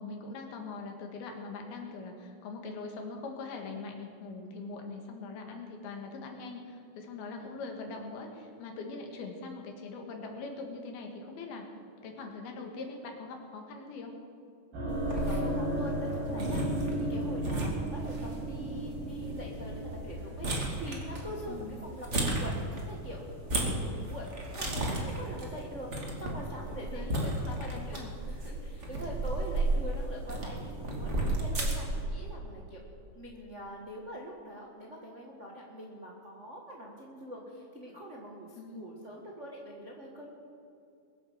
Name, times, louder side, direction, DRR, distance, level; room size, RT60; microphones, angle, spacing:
voice 1, 0.0-11.7 12.0-14.1 21.5-21.8 26.7-28.1 38.6-38.9, left 3 dB, 75° left, 3 dB, 3.7 m, -42 dB
sound 1, 14.7-23.1, right 1 dB, 75° right, 5.9 m, -36 dB
sound 2, 14.9-32.0, right 1 dB, 25° right, 1.7 m, -34 dB
voice 2, 14.9-16.6 16.9-24.3 24.6-25.9 26.2-28.0 28.3-31.1 31.4-32.8 33.1-40.3, equal, 60° right, -2 dB, 0.7 m, -44 dB
22.0 x 8.0 x 7.4 m, 2.5 s
omnidirectional pair, 4.5 m